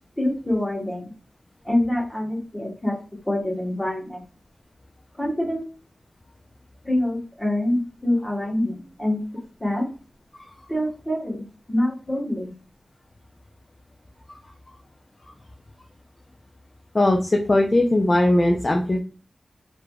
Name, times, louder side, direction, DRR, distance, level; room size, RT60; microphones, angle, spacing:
voice 1, 0.2-1.1 1.6-3.0 3.2-4.2 5.1-5.6 6.8-9.2 9.6-9.9 10.7-12.5, left 1 dB, 15° left, -3 dB, 1.0 m, -25 dB
voice 2, 16.9-19.0, left 1 dB, 30° left, 2 dB, 0.3 m, -19 dB
3.2 x 2.5 x 2.2 m, 0.35 s
wide cardioid pair, 115°, 0 cm